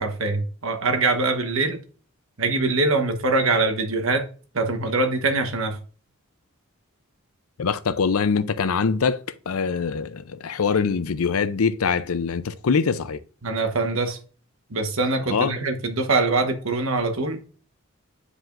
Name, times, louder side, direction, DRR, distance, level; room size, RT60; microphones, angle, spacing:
voice 1, 0.0-1.8 2.4-4.2 4.5-5.8 13.4-14.2 14.7-17.5, right 3 dB, 75° right, 1.2 m, -23 dB
voice 2, 7.6-13.2 15.3-15.5, left 5 dB, 90° left, 0.6 m, -23 dB
9.5 x 5.0 x 2.5 m
head